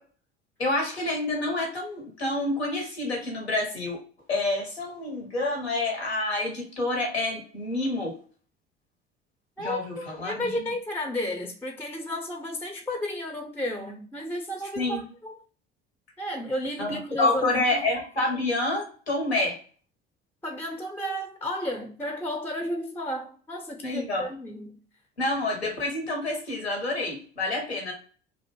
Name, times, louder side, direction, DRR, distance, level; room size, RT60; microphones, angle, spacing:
voice 1, 0.6-4.0 4.3-8.1 9.6-10.5 14.8-15.0 16.8-19.6 23.8-24.2 25.2-27.9, left 2 dB, 85° left, 0.9 m, -28 dB
voice 2, 9.6-15.4 16.2-17.8 20.4-24.8, left 1 dB, 5° left, 0.4 m, -33 dB
2.5 x 2.2 x 2.8 m
figure-of-eight pair, 60°, 31 cm